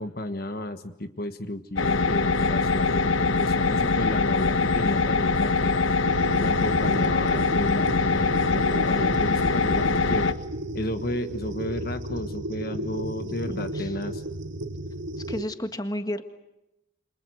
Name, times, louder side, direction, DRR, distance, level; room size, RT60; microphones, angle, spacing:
voice 1, 0.0-5.7 6.4-10.3 10.7-14.2, left 1 dB, 50° left, 9 dB, 1.4 m, -32 dB
sound 1, 1.8-10.3, left 4 dB, 85° left, 1.4 m, -23 dB
sound 2, 6.0-15.5, right 1 dB, 75° right, 1.6 m, -34 dB
voice 2, 13.5-13.9 15.3-16.2, left 1 dB, 20° left, 8 dB, 1.7 m, -32 dB
28.5 x 26.0 x 6.3 m, 0.92 s
head